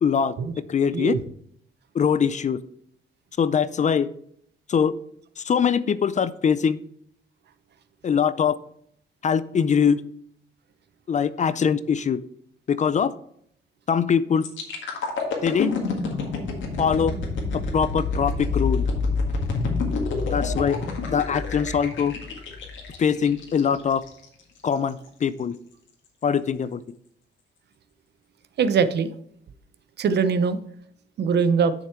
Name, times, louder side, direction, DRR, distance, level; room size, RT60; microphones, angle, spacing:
voice 1, 0.0-0.3 0.7-1.1 1.9-2.6 3.4-4.1 4.7-4.9 5.4-6.8 8.0-8.5 9.2-10.0 11.1-12.2 12.7-13.1 13.9-14.5 15.4-15.7 16.8-17.1 17.7-18.8 20.2-20.8 21.1-22.1 23.0-24.0 24.6-25.6 26.2-26.8, left 7 dB, 35° left, 16 dB, 0.4 m, -22 dB
sound 1, 14.4-24.2 24.7-24.9, left 4 dB, 70° left, 1.9 m, -27 dB
voice 2, 28.6-29.1 30.0-30.6 31.2-31.7, right 6 dB, 60° right, 13 dB, 0.7 m, -21 dB
6.7 x 6.4 x 4.5 m, 0.68 s
cardioid pair, 90°, 20 cm